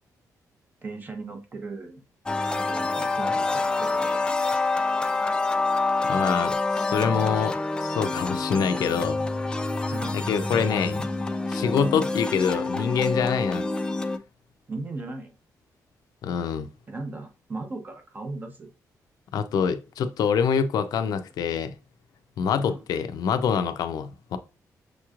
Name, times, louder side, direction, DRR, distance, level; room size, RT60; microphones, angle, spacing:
voice 1, 0.8-2.0 2.5-4.4 9.9-10.7 14.7-15.3 16.9-18.7 22.6-22.8, right 3 dB, 30° right, 0.7 m, -37 dB
sound 1, 2.3-14.2, left 3 dB, 15° left, 0.3 m, -27 dB
voice 2, 6.0-9.2 10.1-11.0 11.5-13.7 16.2-16.7 19.3-21.7 22.4-24.4, left 6 dB, 85° left, 0.5 m, -25 dB
6.4 x 3.0 x 2.4 m
wide cardioid pair, 145°, 6 cm